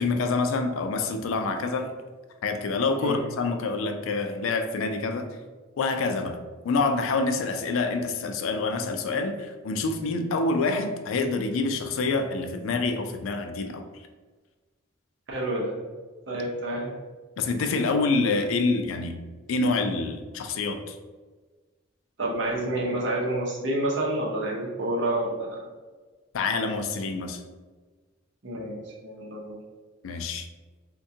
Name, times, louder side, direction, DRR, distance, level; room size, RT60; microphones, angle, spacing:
voice 1, 0.0-1.9 2.4-5.3 5.8-6.4 6.6-13.8 17.4-19.2 19.5-21.0 26.3-27.4 30.0-30.5, left 3 dB, 85° left, 6 dB, 0.4 m, -27 dB
voice 2, 15.3-15.8 16.3-16.9 22.2-25.7 28.4-29.6, right 1 dB, 65° right, -2 dB, 0.7 m, -29 dB
3.5 x 2.2 x 2.7 m, 1.3 s
head